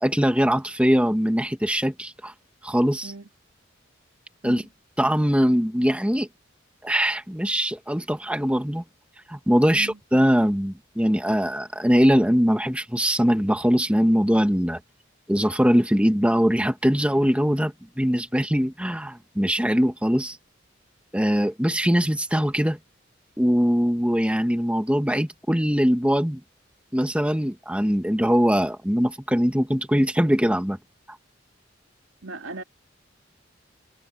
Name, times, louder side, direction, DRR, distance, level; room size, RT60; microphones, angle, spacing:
voice 1, 0.0-2.3 2.6-3.1 4.4-4.6 5.0-6.3 6.8-8.8 9.3-14.8 15.3-20.4 21.1-22.8 23.4-26.4 26.9-30.8 31.1-31.2, equal, 5° right, 1.7 m, -22 dB
voice 2, 32.2-32.6, right 3 dB, 90° right, 2.4 m, -37 dB
head